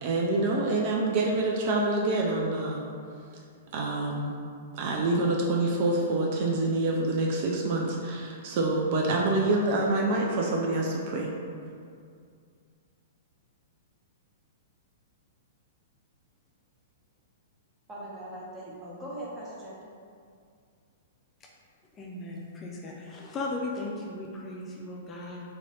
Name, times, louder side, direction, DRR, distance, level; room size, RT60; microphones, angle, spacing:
voice 1, 0.0-2.8 3.7-4.4 4.7-11.3, right 2 dB, 50° right, -1 dB, 0.4 m, -26 dB
voice 2, 17.9-19.9, right 1 dB, 20° right, -6 dB, 0.9 m, -40 dB
voice 3, 21.9-25.4, left 2 dB, 25° left, -2 dB, 0.4 m, -37 dB
2.8 x 2.6 x 3.1 m, 2.3 s
hypercardioid pair, 110°, 0 cm